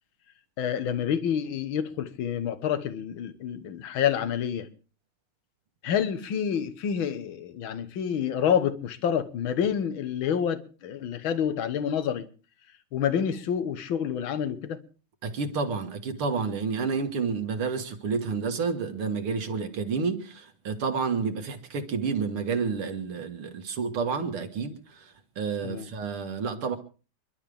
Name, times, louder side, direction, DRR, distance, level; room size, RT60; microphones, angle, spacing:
voice 1, 0.6-4.7 5.8-12.3 12.9-14.8 25.6-25.9, left 8 dB, 70° left, 1.9 m, -28 dB
voice 2, 15.2-26.8, right 5 dB, 75° right, 2.5 m, -30 dB
29.0 x 11.5 x 3.5 m
omnidirectional pair, 2.4 m